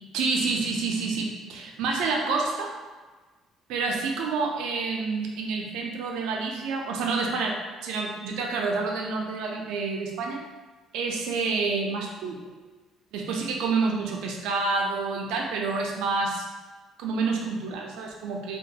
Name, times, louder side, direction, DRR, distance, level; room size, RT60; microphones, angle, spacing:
voice 1, 0.1-2.7 3.7-10.4 10.9-12.4 13.1-16.4 17.0-18.6, right 4 dB, 85° right, 1 dB, 0.4 m, -28 dB
2.3 x 2.2 x 2.7 m, 1.3 s
cardioid pair, 125°, 0 cm